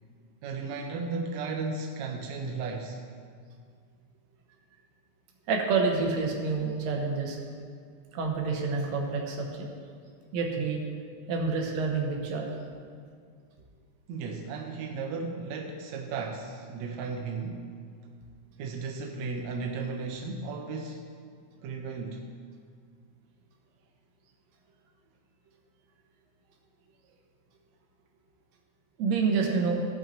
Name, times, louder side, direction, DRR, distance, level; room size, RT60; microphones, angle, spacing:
voice 1, 0.4-3.0 14.1-17.7 18.6-21.1 21.6-22.3, right 4 dB, 80° right, 2 dB, 1.6 m, -35 dB
voice 2, 5.5-7.4 8.1-9.7 10.3-10.8 11.3-12.5 29.0-29.9, right 4 dB, 65° right, 1 dB, 2.1 m, -28 dB
15.5 x 5.6 x 4.3 m, 2.1 s
omnidirectional pair, 3.8 m